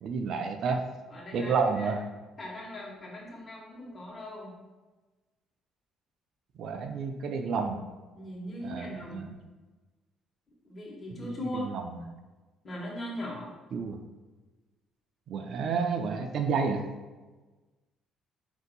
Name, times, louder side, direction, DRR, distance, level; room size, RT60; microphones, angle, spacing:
voice 1, 0.0-0.8 1.3-2.0 6.6-7.8 8.6-9.4 11.1-12.0 13.7-14.0 15.3-16.8, right 5 dB, 65° right, 5 dB, 0.4 m, -30 dB
voice 2, 1.1-2.0 2.4-4.5 8.1-9.3 10.6-11.7 12.6-13.5, left 1 dB, 35° left, -3 dB, 1.2 m, -39 dB
4.2 x 2.7 x 4.0 m, 1.2 s
supercardioid pair, 70°, 0 cm